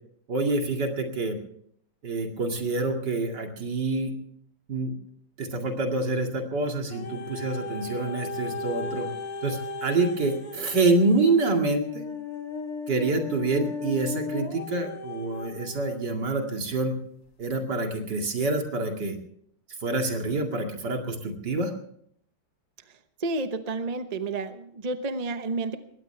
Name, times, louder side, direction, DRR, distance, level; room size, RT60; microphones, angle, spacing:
voice 1, 0.3-1.4 2.0-4.1 4.7-4.9 5.4-9.1 9.4-12.1 12.9-17.0 17.4-19.2 19.8-21.7, right 3 dB, 55° right, 3 dB, 2.8 m, -27 dB
sound 1, 6.9-16.0 16.7-16.8, left 3 dB, 50° left, 1.9 m, -36 dB
voice 2, 23.2-25.8, right 3 dB, 35° right, 8 dB, 0.6 m, -30 dB
21.5 x 17.5 x 3.4 m, 0.68 s
omnidirectional pair, 2.2 m